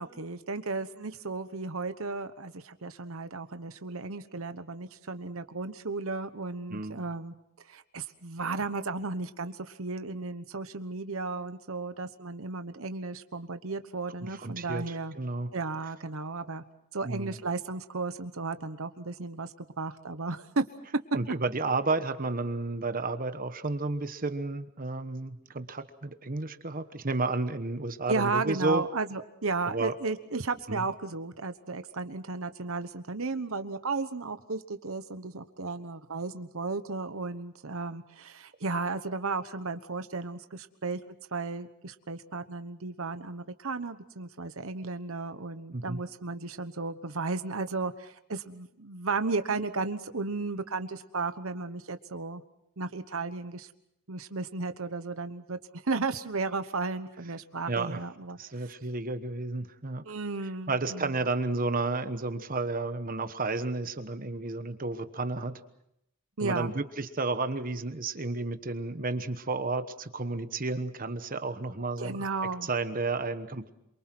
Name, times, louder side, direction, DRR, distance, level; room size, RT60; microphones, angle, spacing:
voice 1, 0.0-7.3 7.6-15.1 15.5-16.6 16.9-20.6 28.1-52.4 52.8-53.7 54.1-58.4 60.0-61.1 66.4-66.7 72.0-72.7, right 3 dB, 65° right, 10 dB, 1.1 m, -34 dB
voice 2, 6.7-7.1 14.2-15.5 17.0-17.4 21.1-28.8 29.7-29.9 30.7-30.8 45.7-46.0 57.7-58.0 58.4-60.0 60.7-65.6 66.4-72.3 72.6-73.7, right 3 dB, 40° right, 9 dB, 1.2 m, -32 dB
27.5 x 24.0 x 6.1 m, 0.79 s
head